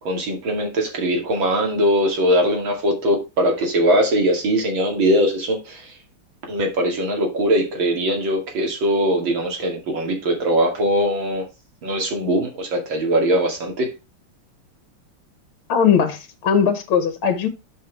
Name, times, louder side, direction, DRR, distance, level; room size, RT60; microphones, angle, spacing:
voice 1, 0.0-6.0 6.5-11.5 11.8-13.9, equal, 60° right, 2.9 m, -21 dB
voice 2, 15.7-17.5, left 7 dB, 70° left, 1.8 m, -19 dB
7.4 x 5.7 x 4.6 m
omnidirectional pair, 2.4 m